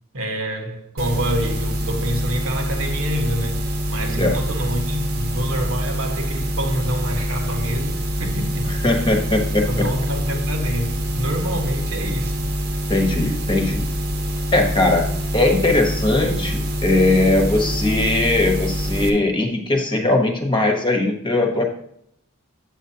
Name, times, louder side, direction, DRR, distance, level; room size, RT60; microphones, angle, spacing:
voice 1, 0.1-8.7 9.6-12.5 16.2-16.5, equal, 80° right, 1.5 m, -27 dB
sound 1, 1.0-19.1, equal, 50° right, 1.1 m, -25 dB
voice 2, 8.8-9.9 12.9-13.9 14.5-21.6, left 2 dB, 20° left, 1.1 m, -20 dB
8.2 x 8.1 x 2.8 m
head